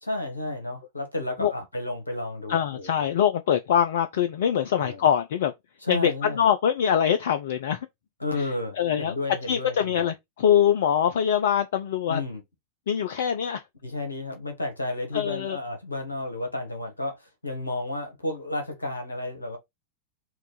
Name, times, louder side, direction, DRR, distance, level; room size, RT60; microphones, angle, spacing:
voice 1, 0.0-3.1 4.7-5.0 5.8-6.4 8.2-10.1 12.1-12.4 13.8-19.6, left 2 dB, 80° left, 1.4 m, -32 dB
voice 2, 2.5-5.5 5.9-7.9 8.4-8.5 8.8-9.1 9.5-12.2 12.9-13.6 15.1-15.6, left 9 dB, 60° left, 0.4 m, -23 dB
4.5 x 2.4 x 3.7 m
figure-of-eight pair, 90°, 0 cm